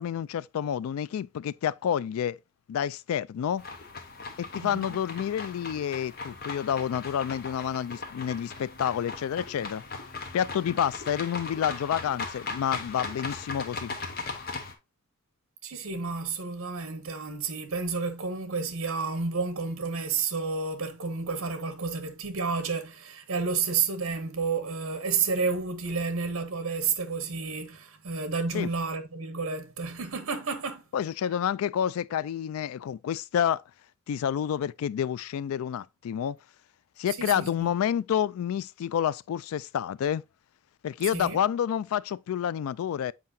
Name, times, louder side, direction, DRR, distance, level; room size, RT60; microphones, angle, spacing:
voice 1, 0.0-2.4 2.7-3.6 4.4-9.8 10.3-13.9 28.5-28.7 30.9-33.6 34.1-36.4 37.0-40.2 40.8-43.1, left 9 dB, 80° left, 0.3 m, -29 dB
sound 1, 3.6-14.7, left 4 dB, 45° left, 1.1 m, -38 dB
voice 2, 4.6-5.0 15.6-30.9 37.0-37.7 41.0-41.4, right 4 dB, 75° right, 0.9 m, -31 dB
7.6 x 4.8 x 2.6 m
head